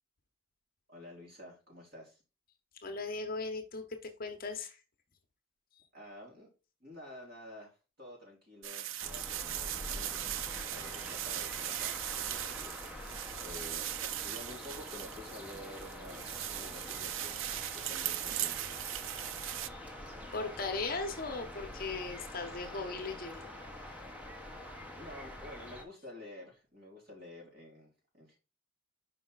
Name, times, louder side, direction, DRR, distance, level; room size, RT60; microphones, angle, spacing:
voice 1, 0.9-2.2 5.9-6.5 6.8-10.3 10.6-17.4 17.7-18.9 25.0-28.4, left 1 dB, 45° right, 3.4 m, -50 dB
voice 2, 2.8-4.8 5.7-5.8 20.3-23.5 23.8-24.0, left 3 dB, 40° left, 0.9 m, -38 dB
sound 1, 8.6-19.7, right 12 dB, 65° right, 0.4 m, -39 dB
sound 2, 9.0-25.8, left 1 dB, 5° right, 1.0 m, -46 dB
5.6 x 5.0 x 3.9 m
head